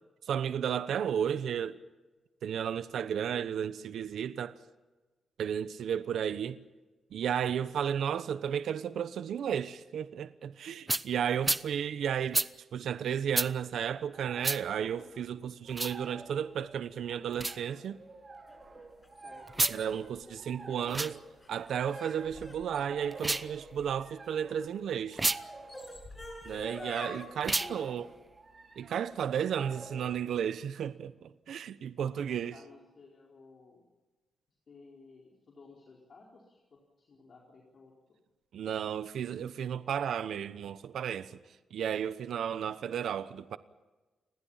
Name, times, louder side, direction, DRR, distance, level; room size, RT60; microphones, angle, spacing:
voice 1, 0.2-1.8 2.4-4.5 5.4-6.6 7.1-12.4 12.7-18.0 19.7-21.2 21.5-25.2 26.4-28.1 28.8-32.5 38.5-41.4 41.7-43.6, right 8 dB, 75° right, 1.0 m, -33 dB
sound 1, 10.9-11.1 11.4-11.6 12.3-12.5 13.3-13.5 14.4-14.6 15.7-16.0 17.3-17.6 19.5-19.8 20.8-21.1 23.1-23.5 25.1-25.4 27.4-27.7, right 2 dB, 15° right, 0.7 m, -30 dB
sound 2, 13.2-30.4, right 3 dB, 30° right, 4.8 m, -51 dB
sound 3, 18.5-24.7 25.4-27.2, left 1 dB, 20° left, 7.3 m, -47 dB
voice 2, 19.1-19.6 27.4-28.0 29.6-30.1 32.0-33.8 34.7-37.9, left 3 dB, 45° left, 4.5 m, -55 dB
29.0 x 20.5 x 5.7 m
wide cardioid pair, 140°, 0 cm